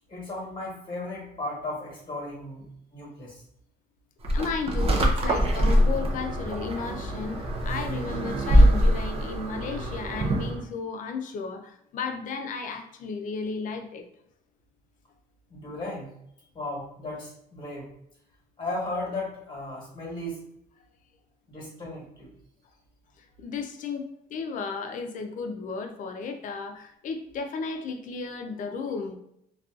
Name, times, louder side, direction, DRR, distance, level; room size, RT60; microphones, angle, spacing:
voice 1, 0.1-3.4 15.5-16.1 16.5-17.9 18.6-20.4 21.5-22.3, left 2 dB, 25° left, -5 dB, 1.2 m, -35 dB
sound 1, 4.2-10.6, equal, 35° right, 0.5 m, -23 dB
voice 2, 4.3-14.1 23.2-29.2, left 4 dB, 50° left, 6 dB, 0.4 m, -34 dB
2.5 x 2.3 x 2.4 m, 0.73 s
cardioid pair, 110°, 17 cm